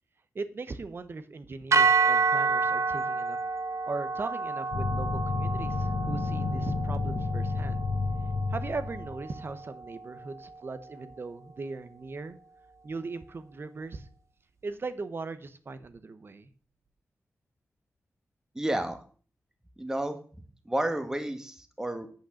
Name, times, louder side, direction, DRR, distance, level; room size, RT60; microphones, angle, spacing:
voice 1, 0.3-3.4 3.9-7.8 8.5-12.4 12.8-14.1 14.6-16.5, right 3 dB, 50° right, 11 dB, 1.1 m, -39 dB
sound 1, 1.7-10.0, right 4 dB, 70° right, 0.8 m, -29 dB
sound 2, 4.7-9.3, left 4 dB, 80° left, 1.1 m, -31 dB
voice 2, 18.5-19.0 19.8-22.1, right 1 dB, 10° right, 7 dB, 1.4 m, -31 dB
9.0 x 5.5 x 7.2 m, 0.42 s
wide cardioid pair, 100°, 5 cm